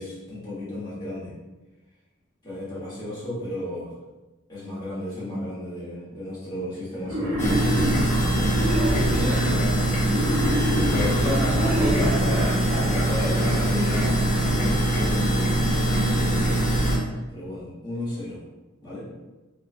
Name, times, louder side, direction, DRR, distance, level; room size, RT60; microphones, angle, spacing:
voice 1, 0.0-1.3 2.4-3.9 4.5-7.4 10.8-11.3 12.1-18.4 18.8-19.1, left 1 dB, 20° left, -10 dB, 1.3 m, -34 dB
Wild animals, 7.0-9.5 10.0-12.5, equal, 75° right, 1.0 m, -27 dB
sound 1, 7.4-17.0, right 1 dB, 35° left, 0.5 m, -23 dB
voice 2, 9.0-10.0 11.1-14.1, equal, 40° right, -7 dB, 0.8 m, -31 dB
3.2 x 2.3 x 2.5 m, 1.1 s
head